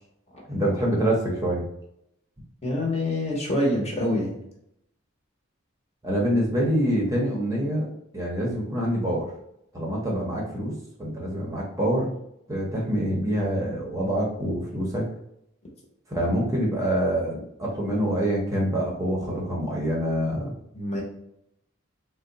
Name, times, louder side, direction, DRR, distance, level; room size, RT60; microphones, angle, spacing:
voice 1, 0.5-1.6 6.0-7.9 8.1-9.3 9.7-10.7 11.0-12.1 12.5-15.1 16.1-20.5, equal, 15° right, -3 dB, 0.7 m, -26 dB
voice 2, 2.6-4.3 20.7-21.0, left 1 dB, 30° left, -2 dB, 0.8 m, -25 dB
3.5 x 2.1 x 3.8 m, 0.75 s
head